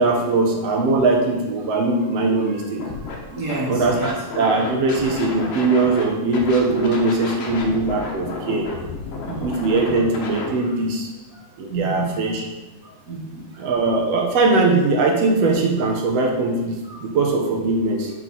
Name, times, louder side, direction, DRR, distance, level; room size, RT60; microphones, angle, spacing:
voice 1, 0.0-2.8 3.7-8.7 9.4-11.1 11.6-12.4 13.6-18.1, right 3 dB, 70° right, 1 dB, 1.8 m, -20 dB
Scratching (performance technique), 2.8-3.1 3.5-6.0 6.3-10.5, left 3 dB, 65° left, 1.7 m, -32 dB
voice 2, 3.3-4.1 9.2-9.6 11.7-12.1 12.8-13.6 16.9-17.0, right 3 dB, 35° right, -4 dB, 1.7 m, -29 dB
6.2 x 5.8 x 3.9 m, 1.1 s
omnidirectional pair, 3.4 m